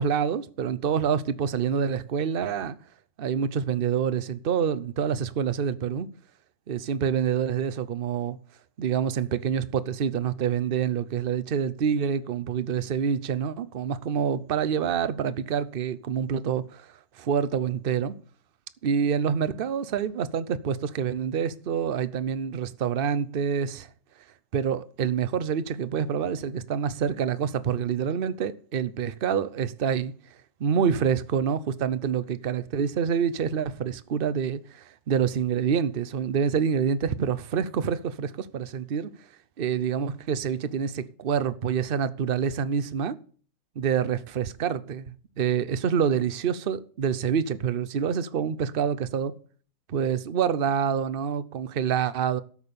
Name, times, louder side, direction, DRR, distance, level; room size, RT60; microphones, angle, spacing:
voice 1, 0.0-2.8 3.2-6.1 6.7-8.4 8.8-16.9 17.2-18.2 18.8-23.9 24.5-30.1 30.6-39.1 39.6-43.2 43.8-49.3 49.9-52.4, right 7 dB, 65° right, 0.5 m, -27 dB
13.0 x 7.4 x 6.9 m
omnidirectional pair, 2.0 m